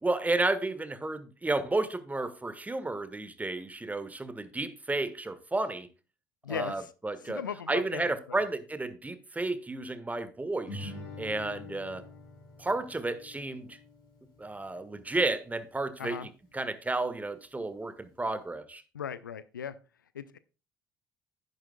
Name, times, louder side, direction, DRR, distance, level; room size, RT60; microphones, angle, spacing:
voice 1, 0.0-5.9 6.5-7.4 7.7-12.0 12.6-13.8 14.4-16.3 16.5-18.8, right 2 dB, 15° right, 1.4 m, -32 dB
voice 2, 6.4-6.9 7.2-8.1 16.0-16.3 18.9-19.8 20.1-20.4, left 8 dB, 80° left, 0.5 m, -37 dB
Guitar, 10.7-15.7, left 2 dB, 55° left, 5.8 m, -46 dB
11.0 x 10.5 x 2.2 m
figure-of-eight pair, 50°, 10 cm